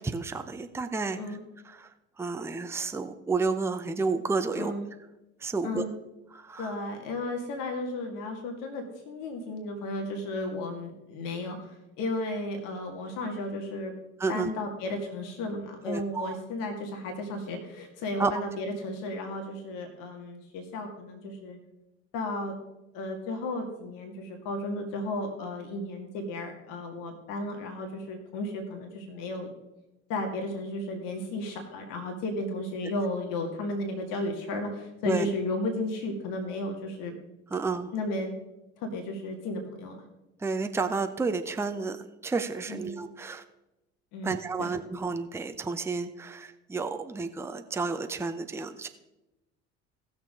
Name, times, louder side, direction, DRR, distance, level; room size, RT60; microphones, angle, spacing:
voice 1, 0.0-1.4 1.7-1.9 2.2-4.7 5.4-5.8 6.3-6.7 14.2-14.5 15.8-16.4 18.2-18.3 35.0-35.3 37.5-37.9 40.4-43.4 44.2-48.9, right 4 dB, 5° right, 8 dB, 0.7 m, -31 dB
voice 2, 4.6-4.9 5.6-5.9 6.6-13.9 14.3-21.6 22.1-22.5 22.9-29.5 30.1-37.1 37.9-38.3 38.8-40.0 42.7-43.0 44.1-44.7, left 2 dB, 55° left, 3 dB, 1.9 m, -34 dB
18.0 x 6.8 x 3.7 m, 0.98 s
figure-of-eight pair, 60°, 38 cm